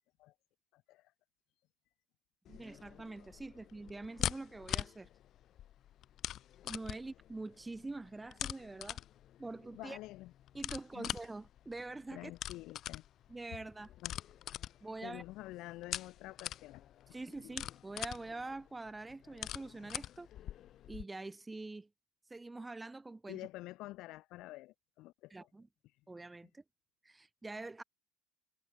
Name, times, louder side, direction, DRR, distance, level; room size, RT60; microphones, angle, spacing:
voice 1, 0.7-1.1 1.6-1.7 9.7-10.3 10.9-11.1 12.1-13.0 14.0-14.1 14.7-17.2 23.3-25.5 25.8-26.0, left 18 dB, 65° left, 1.4 m, -49 dB
sound 1, 2.5-21.0, left 11 dB, 50° left, 0.8 m, -44 dB
voice 2, 2.5-5.1 6.6-9.0 9.4-10.0 10.5-12.3 13.3-13.9 14.8-15.2 17.1-20.3 20.9-21.9 22.3-23.4 25.3-25.7 26.1-26.6 27.0-27.8, right 2 dB, 10° right, 2.5 m, -45 dB
cardioid pair, 120°, 0 cm